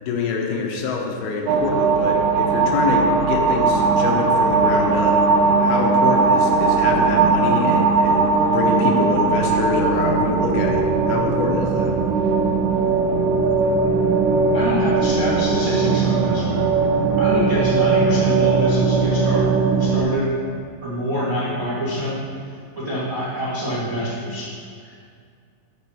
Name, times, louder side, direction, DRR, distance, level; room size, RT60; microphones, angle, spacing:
voice 1, 0.0-5.2 5.6-11.9, left 4 dB, 80° left, 0 dB, 2.9 m, -25 dB
sound 1, 1.5-20.0, right 4 dB, 75° right, 2.6 m, -19 dB
voice 2, 14.5-16.7 17.2-19.5 19.8-20.3 20.8-22.2 22.5-24.5 24.8-25.0, equal, 55° right, -8 dB, 0.9 m, -26 dB
11.5 x 3.9 x 6.2 m, 2.2 s
omnidirectional pair, 4.4 m